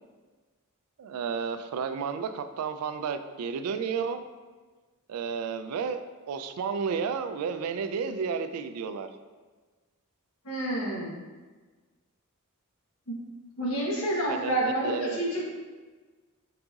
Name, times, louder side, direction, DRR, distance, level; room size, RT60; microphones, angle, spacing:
voice 1, 1.0-4.2 5.1-6.0 6.3-9.1 14.3-15.2, right 6 dB, 80° right, 10 dB, 0.3 m, -32 dB
voice 2, 10.4-11.1 13.1-13.2 13.6-15.4, right 1 dB, 75° left, -3 dB, 1.1 m, -29 dB
4.8 x 3.9 x 2.3 m, 1.3 s
head